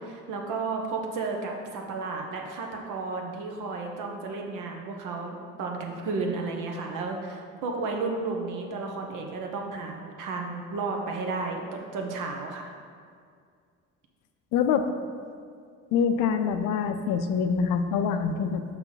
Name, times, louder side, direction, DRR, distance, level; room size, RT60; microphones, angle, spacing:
voice 1, 0.0-12.7, right 3 dB, 75° right, 1 dB, 1.1 m, -33 dB
voice 2, 14.5-14.9 15.9-18.6, left 6 dB, 80° left, 8 dB, 0.6 m, -25 dB
6.1 x 5.7 x 4.0 m, 2.2 s
cardioid pair, 120°, 31 cm